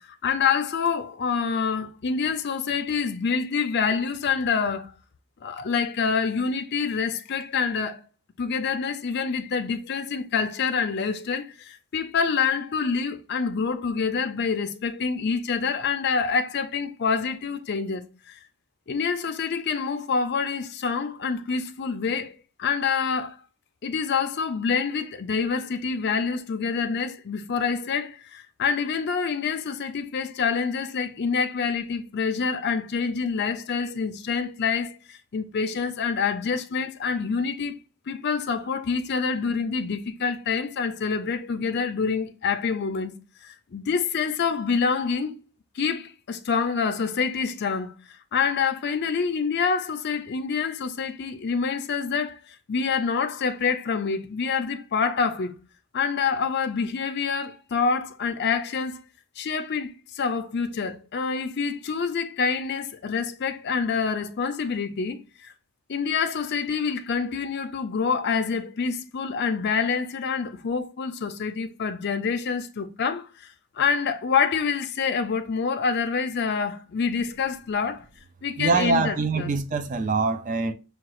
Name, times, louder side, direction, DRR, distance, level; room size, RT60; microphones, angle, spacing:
voice 1, 0.1-4.9 5.4-8.0 8.4-18.4 18.9-23.4 23.8-37.8 38.1-43.1 43.4-45.3 45.7-55.5 55.9-59.0 59.4-65.5 65.9-78.0 78.4-79.5, left 5 dB, 50° left, 0.4 m, -27 dB
voice 2, 78.6-80.7, right 4 dB, 35° right, 0.4 m, -24 dB
5.6 x 2.3 x 3.0 m
head